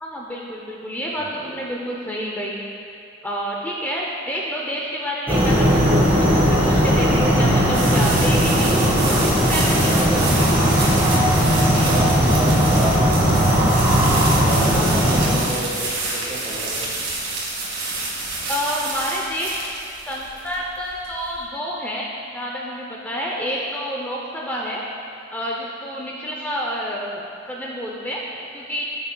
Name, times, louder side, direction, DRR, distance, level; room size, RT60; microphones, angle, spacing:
voice 1, 0.0-2.6 3.2-8.7 9.0-10.5 14.7-15.0 18.5-19.6 20.1-24.8 25.3-28.8, equal, 10° left, -3 dB, 0.5 m, -29 dB
voice 2, 1.2-1.5 8.7-9.4 9.8-10.3 11.9-13.8 14.4-15.8 16.1-16.9, right 1 dB, 35° right, -4 dB, 1.5 m, -30 dB
sound 1, 5.3-15.4, equal, 10° right, 1.4 m, -18 dB
sound 2, 7.1-21.4, right 2 dB, 80° right, 1.9 m, -28 dB
13.0 x 6.3 x 2.2 m, 2.5 s
head